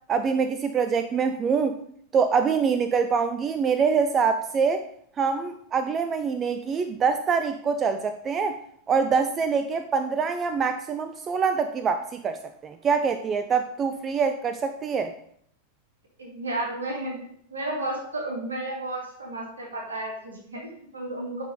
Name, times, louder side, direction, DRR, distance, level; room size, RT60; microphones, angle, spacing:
voice 1, 0.1-1.8 2.1-4.8 5.2-8.6 8.9-15.1, right 5 dB, 25° right, 9 dB, 0.4 m, -25 dB
voice 2, 16.2-17.2 17.5-21.4, right 2 dB, 70° right, -1 dB, 2.3 m, -32 dB
10.5 x 4.6 x 3.8 m, 0.66 s
figure-of-eight pair, 90°, 0 cm